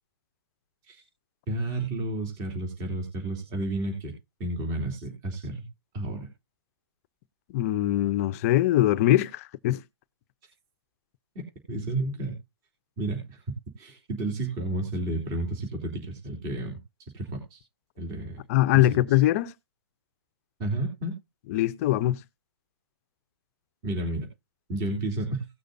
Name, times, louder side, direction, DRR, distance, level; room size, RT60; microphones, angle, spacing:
voice 1, 1.5-4.1 4.4-5.6 5.9-6.3 11.7-12.4 13.0-13.4 13.8-16.8 17.1-17.6 18.0-18.4 18.7-19.0 20.6-21.1 23.8-24.3 24.7-25.5, right 2 dB, 25° right, 3.3 m, -31 dB
voice 2, 7.5-9.8 18.5-19.5 21.5-22.2, left 14 dB, 35° left, 0.6 m, -22 dB
18.0 x 6.6 x 2.6 m
hypercardioid pair, 145°, 13 cm